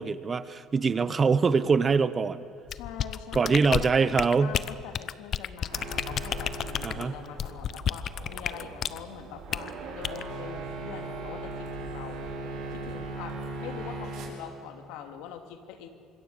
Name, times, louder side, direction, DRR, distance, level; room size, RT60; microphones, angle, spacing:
voice 1, 0.0-2.4 3.3-4.5 6.8-7.1, right 5 dB, 25° right, 14 dB, 0.9 m, -24 dB
voice 2, 2.7-4.1 4.4-12.3 12.7-15.9, left 8 dB, 85° left, 6 dB, 2.3 m, -43 dB
sound 1, 2.7-9.0 9.5-9.7 10.0-10.2, left 9 dB, 45° left, 0.7 m, -31 dB
sound 2, 5.7-14.3, right 3 dB, 70° right, 5.3 m, -39 dB
26.0 x 21.5 x 6.6 m, 2.6 s
cardioid pair, 130°, 0 cm